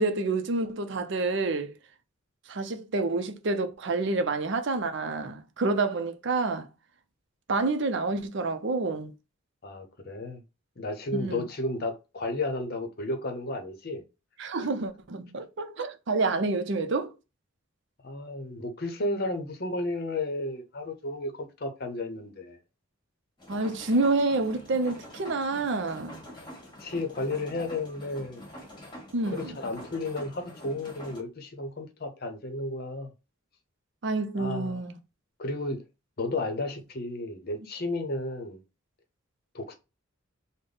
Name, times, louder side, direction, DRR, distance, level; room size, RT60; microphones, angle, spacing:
voice 1, 0.0-1.7 2.5-6.7 7.5-9.1 11.1-11.5 14.4-17.1 23.5-26.2 29.1-29.6 34.0-34.9, right 3 dB, 60° right, 0.5 m, -28 dB
voice 2, 9.6-10.4 10.8-14.0 18.0-22.6 26.8-28.4 29.3-33.1 34.4-34.8 35.4-35.8 36.2-38.6 39.5-39.7, left 2 dB, 50° left, 0.7 m, -33 dB
sound 1, 23.4-31.2, left 1 dB, 25° left, 1.1 m, -45 dB
3.5 x 2.1 x 3.8 m
head